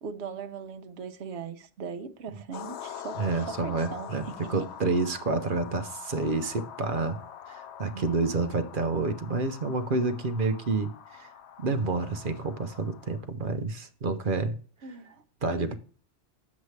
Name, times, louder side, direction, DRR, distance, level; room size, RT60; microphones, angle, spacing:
voice 1, 0.0-4.5 7.9-8.2 14.8-15.2, right 6 dB, 70° right, 1.1 m, -40 dB
sound 1, 2.5-13.3, left 9 dB, 70° left, 0.9 m, -44 dB
voice 2, 3.2-7.2 7.5-11.3 11.6-14.5 15.4-15.8, right 3 dB, 50° right, 0.9 m, -29 dB
9.4 x 7.3 x 3.2 m
omnidirectional pair, 1.2 m